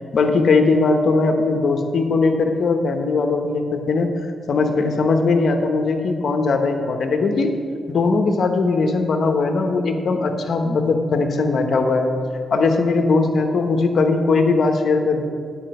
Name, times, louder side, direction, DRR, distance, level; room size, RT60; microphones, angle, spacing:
voice 1, 0.1-4.1 4.5-7.5 7.9-12.1 12.5-15.3, left 3 dB, 65° left, 5 dB, 1.0 m, -19 dB
9.0 x 5.1 x 7.7 m, 2.3 s
cardioid pair, 70°, 0 cm